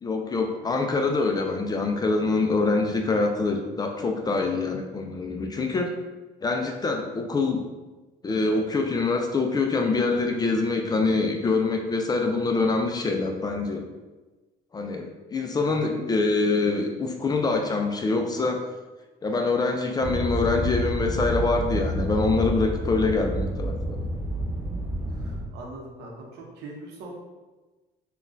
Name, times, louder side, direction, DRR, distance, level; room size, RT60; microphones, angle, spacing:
voice 1, 0.0-5.9 6.4-7.6 8.2-13.8 14.7-18.6 19.2-24.0, left 3 dB, 25° left, 3 dB, 0.3 m, -25 dB
voice 2, 15.4-15.8 25.1-27.2, right 2 dB, 80° right, -1 dB, 0.8 m, -42 dB
sound 1, 20.0-25.4, right 1 dB, 10° right, 0.7 m, -29 dB
3.8 x 2.3 x 2.5 m, 1.2 s
cardioid pair, 110°, 17 cm